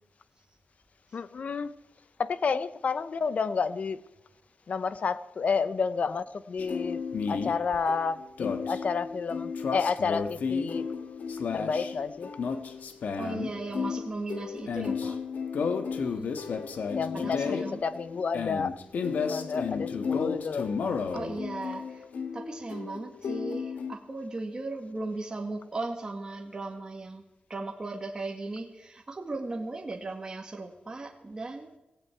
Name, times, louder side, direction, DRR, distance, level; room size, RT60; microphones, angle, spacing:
voice 1, 1.1-1.7 2.2-4.0 4.7-10.9 11.5-12.3 16.9-18.8 19.1-20.7, left 5 dB, 60° left, 0.8 m, -30 dB
sound 1, 6.6-24.0, left 5 dB, 85° left, 1.4 m, -33 dB
voice 2, 13.2-15.2 16.0-16.3 17.1-17.8 21.1-22.0 22.3-27.2 27.5-31.8, right 2 dB, 30° right, 1.9 m, -37 dB
17.5 x 17.5 x 4.7 m
wide cardioid pair, 115°, 3 cm